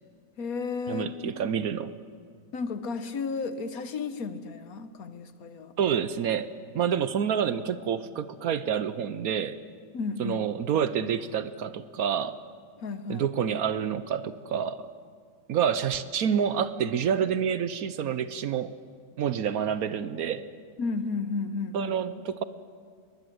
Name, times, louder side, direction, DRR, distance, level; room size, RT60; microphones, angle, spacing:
voice 1, 0.4-1.4 2.5-5.7 9.9-10.4 12.8-13.3 20.8-21.9, left 4 dB, 60° left, 11 dB, 1.4 m, -33 dB
voice 2, 0.9-1.9 5.8-6.5 6.7-9.6 10.2-12.4 13.1-14.9 15.5-18.8 19.2-20.4 21.7-22.4, right 8 dB, 65° right, 13 dB, 1.1 m, -28 dB
22.5 x 20.0 x 7.8 m, 2.1 s
omnidirectional pair, 1.8 m